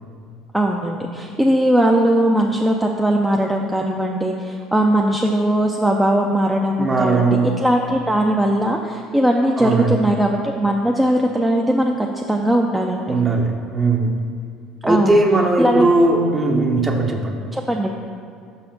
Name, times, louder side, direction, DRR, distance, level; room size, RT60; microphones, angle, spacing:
voice 1, 0.5-7.3 7.6-13.2 14.8-15.2 15.6-15.9 17.5-17.9, right 1 dB, 10° right, 1 dB, 0.5 m, -19 dB
voice 2, 6.8-7.6 9.6-10.0 13.1-14.2 14.8-17.4, right 2 dB, 25° right, 3 dB, 0.9 m, -18 dB
5.7 x 4.1 x 5.3 m, 2.3 s
hypercardioid pair, 70°, 0 cm